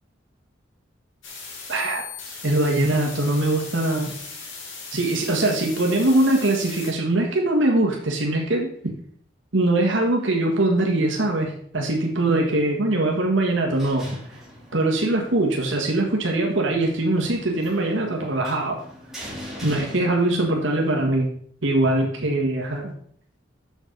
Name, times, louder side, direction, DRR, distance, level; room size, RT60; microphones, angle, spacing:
sound 1, 1.2-6.9, left 4 dB, 80° left, 2.3 m, -38 dB
voice 1, 1.7-2.0 2.4-4.1 4.9-8.7 9.5-14.1 14.7-18.8 19.6-21.3 21.6-22.9, right 2 dB, 80° right, 0 dB, 1.5 m, -22 dB
sound 2, 13.4-20.7, equal, ahead, 2.9 m, -42 dB
7.1 x 6.3 x 5.3 m, 0.62 s
head